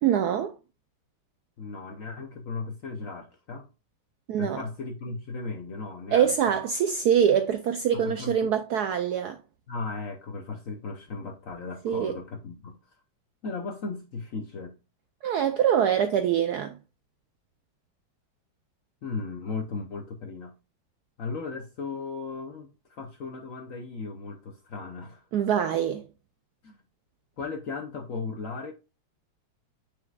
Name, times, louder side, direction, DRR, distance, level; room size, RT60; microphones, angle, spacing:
voice 1, 0.0-0.5 4.3-4.6 6.1-9.4 11.8-12.1 15.2-16.8 25.3-26.1, right 8 dB, 80° right, 0.9 m, -24 dB
voice 2, 1.6-3.7 4.4-6.6 7.9-8.5 9.7-13.0 13.4-14.8 19.0-20.6 21.2-25.3 26.6-26.8 27.4-28.7, left 4 dB, 60° left, 0.8 m, -36 dB
9.3 x 4.9 x 2.3 m
omnidirectional pair, 2.2 m